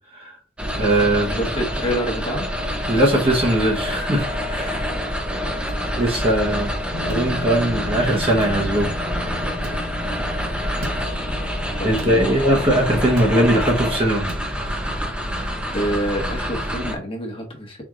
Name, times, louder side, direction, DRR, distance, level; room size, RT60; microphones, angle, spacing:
sound 1, 0.6-16.9, equal, 5° right, 0.7 m, -27 dB
voice 1, 0.8-1.4 2.9-4.9 6.0-6.7 7.0-9.0 11.8-14.3, right 1 dB, 30° right, 1.0 m, -20 dB
voice 2, 1.3-2.5 11.8-12.6 15.7-17.8, equal, 30° left, 1.2 m, -27 dB
sound 2, 5.7-5.8 7.1-7.3 8.4-8.6 9.6-9.9 10.8-11.1 12.0-12.2 13.2-13.4 14.3-14.5, right 2 dB, 85° right, 1.0 m, -37 dB
Bass guitar, 6.9-13.2, left 2 dB, 70° left, 0.6 m, -37 dB
4.6 x 2.6 x 3.7 m
head